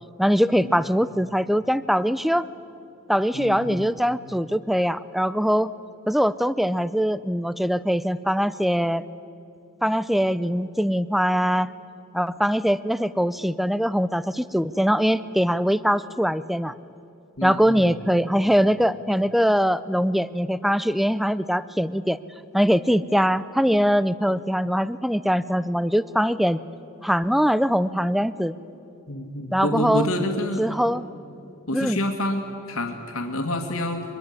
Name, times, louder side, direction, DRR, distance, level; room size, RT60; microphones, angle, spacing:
voice 1, 0.2-2.5 3.1-5.7 6.1-9.1 9.8-11.7 12.1-16.7 17.4-22.2 22.5-26.6 27.0-28.5 29.5-30.1 30.6-31.1 31.7-32.0, equal, ahead, 16 dB, 0.5 m, -22 dB
voice 2, 3.3-3.9 17.4-18.2 29.1-30.6 31.7-34.0, left 1 dB, 85° left, 4 dB, 2.5 m, -28 dB
24.5 x 21.5 x 9.7 m, 2.6 s
head